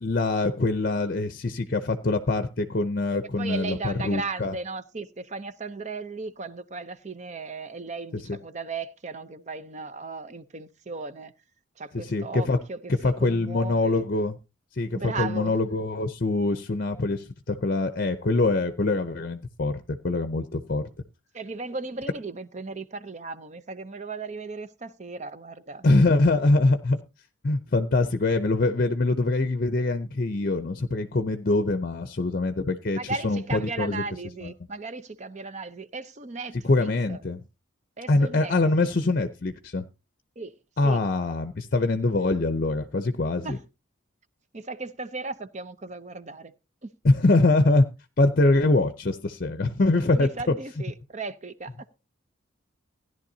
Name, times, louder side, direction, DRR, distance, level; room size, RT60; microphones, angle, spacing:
voice 1, 0.0-4.5 11.9-12.6 13.0-14.3 14.8-20.8 25.8-27.0 27.4-34.0 34.4-34.5 36.6-37.4 38.1-39.9 40.8-43.6 47.0-47.8 48.2-50.3, left 2 dB, 45° left, 0.6 m, -24 dB
voice 2, 3.4-11.3 11.8-14.0 14.9-15.6 21.3-25.9 33.0-37.2 38.0-38.9 40.4-40.6 40.8-41.0 43.4-43.6 44.5-46.5 46.8-46.9 50.1-51.8, right 3 dB, 35° right, 0.6 m, -36 dB
16.5 x 11.0 x 2.7 m
head